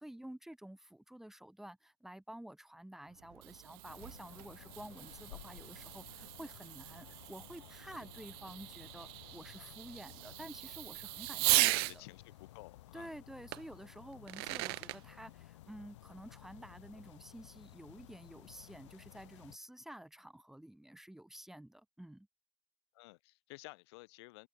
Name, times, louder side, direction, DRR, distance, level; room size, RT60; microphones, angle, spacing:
voice 1, 0.0-12.0 12.9-22.3, right 1 dB, ahead, 1.0 m, -51 dB
Fireworks, 3.1-12.0 13.5-13.6 14.1-15.0, right 28 dB, 60° right, 0.5 m, -37 dB
sound 1, 3.8-19.6, left 15 dB, 85° left, 3.4 m, -56 dB
voice 2, 11.4-13.2 22.9-24.5, left 23 dB, 65° left, 1.1 m, -53 dB
open air
supercardioid pair, 150°, 15 cm